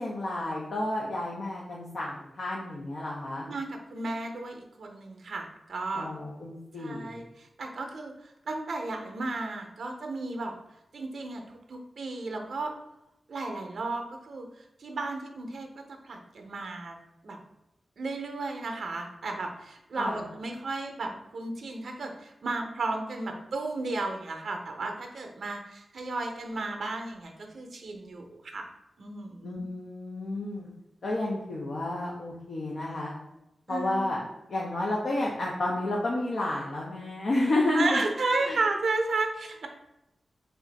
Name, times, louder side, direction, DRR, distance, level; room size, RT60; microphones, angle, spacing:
voice 1, 0.0-3.5 5.9-7.2 20.0-20.2 29.4-30.7 31.0-33.1 33.7-34.2 34.5-38.0 38.4-38.6, left 2 dB, 65° left, -3 dB, 0.6 m, -31 dB
voice 2, 3.5-6.1 6.8-10.5 10.9-12.7 13.3-17.0 17.2-17.4 18.0-28.6 29.0-29.6 33.7-34.2 37.7-39.7, right 3 dB, 65° right, 3 dB, 0.5 m, -34 dB
3.3 x 2.5 x 3.9 m, 0.87 s
wide cardioid pair, 175°, 0 cm